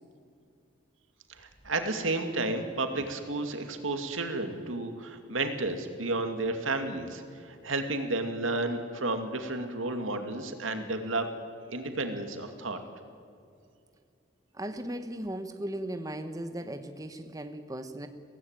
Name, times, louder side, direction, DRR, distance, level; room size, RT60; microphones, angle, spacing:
voice 1, 1.4-11.3 11.7-12.8, right 2 dB, 90° right, 6 dB, 2.4 m, -32 dB
voice 2, 14.5-18.1, right 1 dB, 20° right, 8 dB, 1.1 m, -37 dB
23.5 x 17.0 x 9.1 m, 2.5 s
head